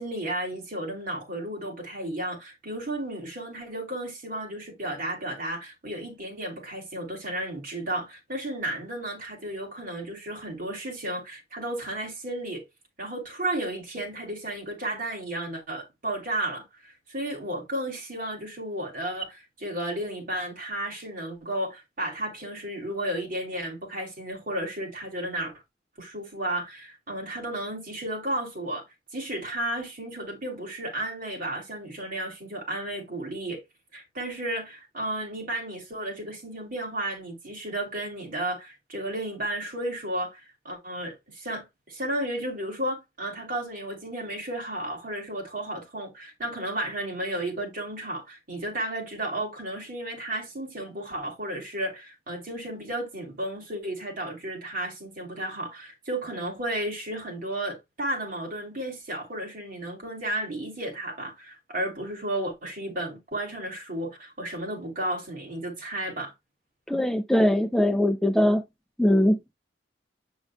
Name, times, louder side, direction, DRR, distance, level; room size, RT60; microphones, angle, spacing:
voice 1, 0.0-12.6 13.0-25.5 26.0-28.9 29.1-33.6 33.9-66.3, right 1 dB, 50° right, 3.1 m, -33 dB
voice 2, 66.9-68.6 69.0-69.5, left 1 dB, ahead, 0.4 m, -21 dB
7.7 x 6.2 x 2.3 m
head